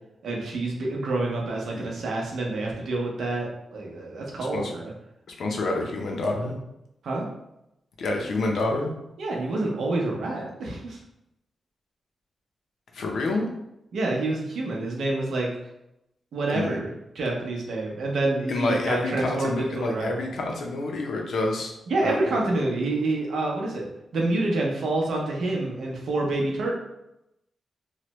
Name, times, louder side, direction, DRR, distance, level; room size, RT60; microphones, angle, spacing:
voice 1, 0.2-4.9 7.0-7.2 9.2-11.0 13.9-15.5 16.3-16.9 17.1-20.1 21.9-23.9 24.1-26.7, right 2 dB, 75° right, -1 dB, 0.7 m, -27 dB
voice 2, 5.4-6.5 8.0-8.9 12.9-13.5 16.5-16.8 18.5-21.7 22.0-22.4, left 2 dB, 65° left, 1 dB, 0.5 m, -28 dB
3.1 x 2.1 x 3.0 m, 0.86 s
wide cardioid pair, 170°, 0 cm